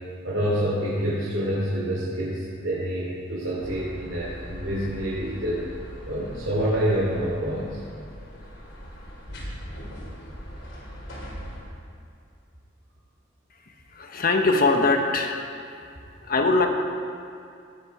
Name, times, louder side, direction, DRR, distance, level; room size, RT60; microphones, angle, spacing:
voice 1, 0.2-5.7 6.1-7.8, equal, 70° right, -7 dB, 3.1 m, -27 dB
sound 1, 3.6-11.6, equal, 70° left, 3.5 m, -40 dB
voice 2, 13.9-15.4 16.2-16.7, left 3 dB, 50° left, 4 dB, 1.2 m, -21 dB
18.0 x 8.6 x 4.9 m, 2.4 s
head